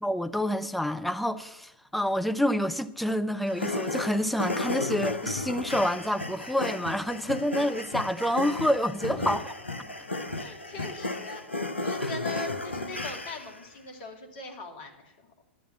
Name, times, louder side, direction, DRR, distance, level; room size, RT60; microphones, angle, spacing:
voice 1, 0.0-9.4 12.0-12.1, equal, ahead, 0.6 m, -28 dB
sound 1, 3.5-13.6, left 2 dB, 85° left, 0.8 m, -34 dB
voice 2, 9.1-9.4 10.3-15.3, left 3 dB, 50° left, 2.4 m, -41 dB
11.5 x 8.2 x 7.4 m
figure-of-eight pair, 100°, 6 cm